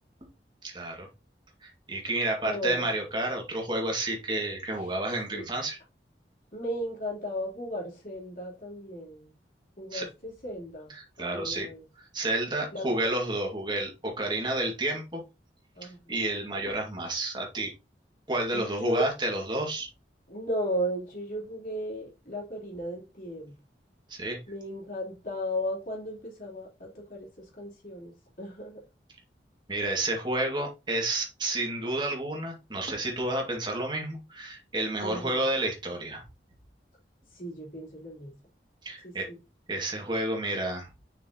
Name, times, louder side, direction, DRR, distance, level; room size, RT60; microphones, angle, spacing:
voice 1, 0.6-1.1 1.6-5.8 9.9-10.1 10.9-11.7 12.0-15.2 15.8-17.7 18.3-19.9 24.1-24.4 29.7-36.2 38.8-39.3 39.7-40.9, right 2 dB, 25° right, 2.3 m, -30 dB
voice 2, 2.4-2.9 4.8-4.9 5.3-5.4 6.5-9.3 9.8-11.8 12.7-12.9 15.8-16.0 18.5-19.1 20.3-23.6 24.5-28.8 35.0-35.5 37.4-38.3 39.0-39.4, equal, 50° left, 3.6 m, -35 dB
6.5 x 6.2 x 3.0 m
head